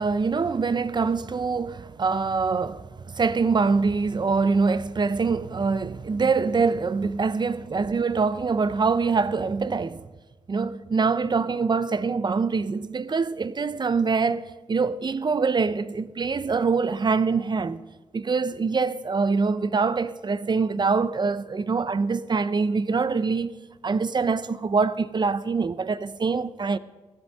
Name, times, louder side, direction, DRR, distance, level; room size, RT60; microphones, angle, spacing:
voice 1, 0.0-10.1 10.5-17.8 18.1-23.6 23.8-26.8, right 4 dB, 35° right, 0.5 m, -24 dB
14.5 x 8.3 x 6.5 m
cardioid pair, 75°, 12 cm